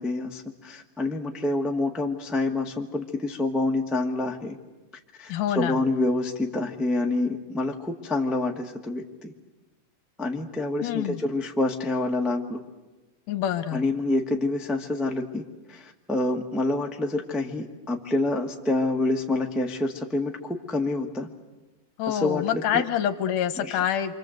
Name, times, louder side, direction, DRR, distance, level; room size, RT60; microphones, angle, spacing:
voice 1, 0.0-4.6 5.2-9.3 10.2-12.6 13.7-15.4 15.7-21.3 22.1-22.8 23.6-23.8, left 2 dB, ahead, 1 dB, 0.6 m, -27 dB
voice 2, 5.3-5.8 10.8-11.2 13.3-13.8 22.0-24.1, left 10 dB, 80° left, 10 dB, 2.7 m, -26 dB
28.5 x 25.5 x 8.0 m, 1.1 s
omnidirectional pair, 3.7 m